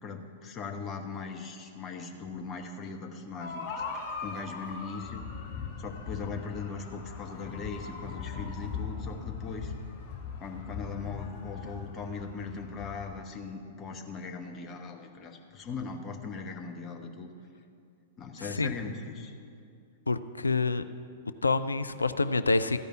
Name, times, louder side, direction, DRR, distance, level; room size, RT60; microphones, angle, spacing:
voice 1, 0.0-3.7 4.2-5.3 5.8-9.7 10.4-17.3 18.2-19.3, left 4 dB, 25° left, 3 dB, 1.1 m, -39 dB
sound 1, 3.4-13.2, left 5 dB, 50° left, 2.1 m, -40 dB
voice 2, 18.4-18.7 20.1-20.8 21.4-22.8, left 3 dB, 80° left, 12 dB, 0.4 m, -27 dB
13.5 x 5.3 x 8.6 m, 2.3 s
figure-of-eight pair, 100°, 0 cm